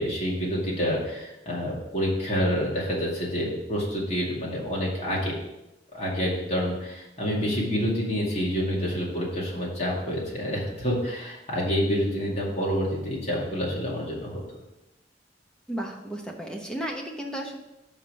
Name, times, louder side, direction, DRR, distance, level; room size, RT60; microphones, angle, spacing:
voice 1, 0.0-5.4 5.9-14.4, equal, 40° left, -4 dB, 2.3 m, -28 dB
voice 2, 15.7-17.6, right 1 dB, 5° left, 0 dB, 1.0 m, -34 dB
5.6 x 5.2 x 6.2 m, 0.95 s
head